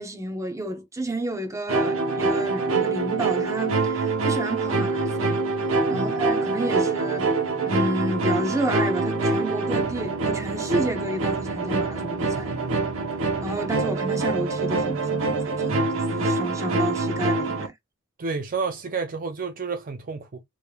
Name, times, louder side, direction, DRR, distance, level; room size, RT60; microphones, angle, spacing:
voice 1, 0.0-5.4 5.9-7.3 7.6-12.5 13.4-17.7, right 2 dB, 15° right, 0.8 m, -31 dB
sound 1, 1.7-17.7, right 3 dB, 80° right, 0.9 m, -25 dB
voice 2, 12.3-12.9 18.2-20.4, right 4 dB, 40° right, 0.5 m, -31 dB
3.4 x 3.2 x 2.3 m
head